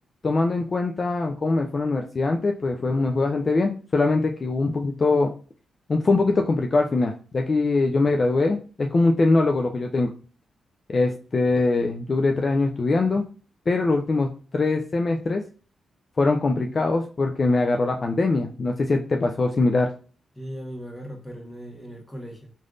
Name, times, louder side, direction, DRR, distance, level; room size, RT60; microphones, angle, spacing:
voice 1, 0.2-5.3 5.9-10.1 10.9-13.3 13.7-14.3 14.5-15.4 16.2-19.9, left 3 dB, 45° left, 3 dB, 0.4 m, -22 dB
voice 2, 20.3-22.5, equal, 10° left, 1 dB, 1.2 m, -38 dB
3.3 x 2.5 x 2.4 m, 0.37 s
cardioid pair, 60°, 0 cm